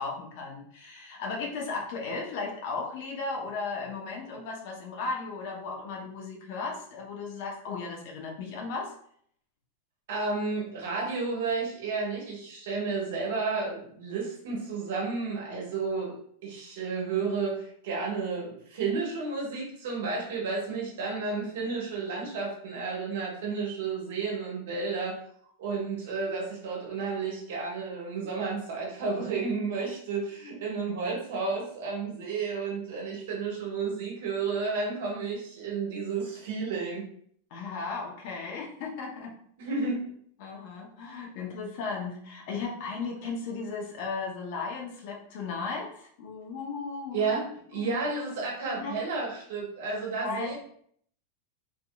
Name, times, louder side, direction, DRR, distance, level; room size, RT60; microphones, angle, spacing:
voice 1, 0.0-8.9 37.5-39.4 40.4-47.4 47.7-48.0 48.8-48.9 50.2-50.5, left 4 dB, 40° left, 0 dB, 0.8 m, -36 dB
voice 2, 10.1-16.2 16.4-25.2 25.6-37.1 39.6-40.0 47.1-47.4 47.7-50.5, right 4 dB, 60° right, -2 dB, 1.4 m, -32 dB
3.6 x 3.5 x 2.3 m, 0.63 s
supercardioid pair, 180°, 0 cm